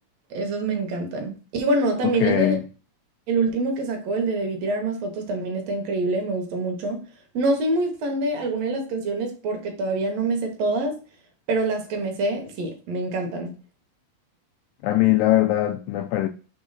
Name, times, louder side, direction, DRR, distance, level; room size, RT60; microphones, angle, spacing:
voice 1, 0.3-2.6 3.3-7.1 7.3-11.0 11.5-13.5, right 2 dB, 70° right, 1.6 m, -25 dB
voice 2, 2.0-2.6 14.8-16.3, left 15 dB, 85° left, 2.0 m, -21 dB
6.2 x 3.9 x 4.0 m
omnidirectional pair, 4.3 m